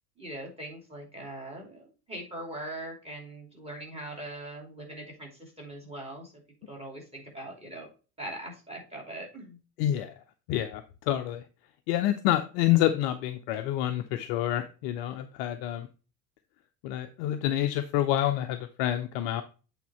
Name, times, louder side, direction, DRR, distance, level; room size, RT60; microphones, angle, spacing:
voice 1, 0.2-6.3 6.7-7.9 8.2-9.6, right 1 dB, 10° right, 0 dB, 2.9 m, -41 dB
voice 2, 9.8-10.1 10.5-11.4 11.9-15.9 16.8-19.4, left 12 dB, 40° left, 8 dB, 0.5 m, -28 dB
8.3 x 3.7 x 4.3 m, 0.34 s
figure-of-eight pair, 75°, 48 cm